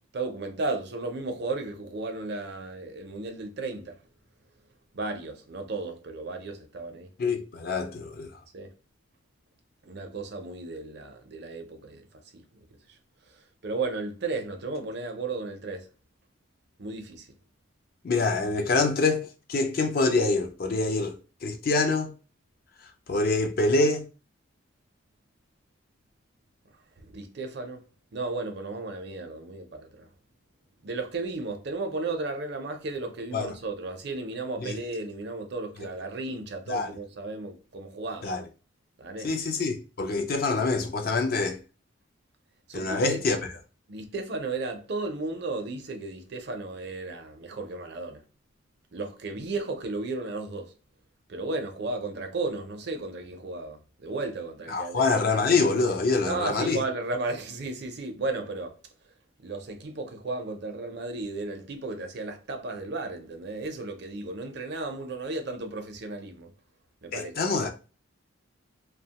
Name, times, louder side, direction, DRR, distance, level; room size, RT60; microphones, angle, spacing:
voice 1, 0.0-4.0 4.9-7.1 8.5-8.7 9.8-12.1 12.3-12.4 13.3-15.9 16.8-17.3 27.0-27.8 28.1-30.1 30.8-38.3 39.0-39.3 42.7-43.4 43.9-48.2 48.9-50.7 51.3-55.1 56.2-58.8 59.4-66.5 67.0-67.3, right 3 dB, 50° right, 0.5 m, -34 dB
voice 2, 7.2-8.3 18.0-21.1 21.4-22.1 23.1-24.1 33.3-33.5 34.6-34.8 36.7-36.9 38.2-38.4 39.2-41.6 42.7-43.4 54.7-56.8 67.1-67.7, left 3 dB, 45° left, 0.4 m, -25 dB
2.7 x 2.1 x 2.8 m
head